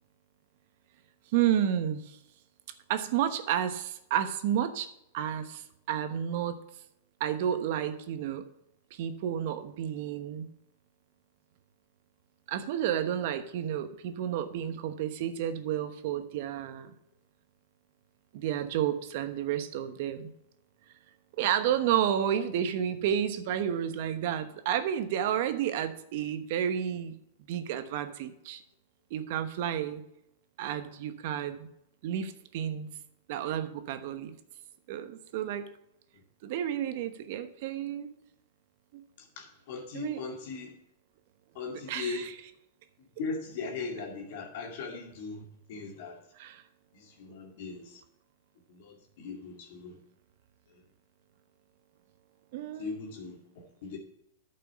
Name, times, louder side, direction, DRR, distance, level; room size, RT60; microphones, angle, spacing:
voice 1, 1.3-2.2 2.9-4.9 5.1-6.6 7.2-8.4 8.9-10.5 12.5-16.9 18.3-20.3 21.4-27.1 27.5-28.6 29.1-30.0 30.6-31.7 32.0-32.9 33.3-34.3 34.9-35.7 36.4-38.1 38.9-39.0 39.9-40.2 41.9-42.4 46.4-46.6 52.5-53.0, right 10 dB, 60° right, 10 dB, 1.0 m, -31 dB
voice 2, 39.4-40.7 41.5-42.3 43.2-45.4 45.7-46.2 47.0-48.0 48.7-50.0 52.8-53.4 53.8-54.0, left 4 dB, 60° left, 0 dB, 2.2 m, -38 dB
9.2 x 5.6 x 6.7 m, 0.79 s
hypercardioid pair, 115°, 0 cm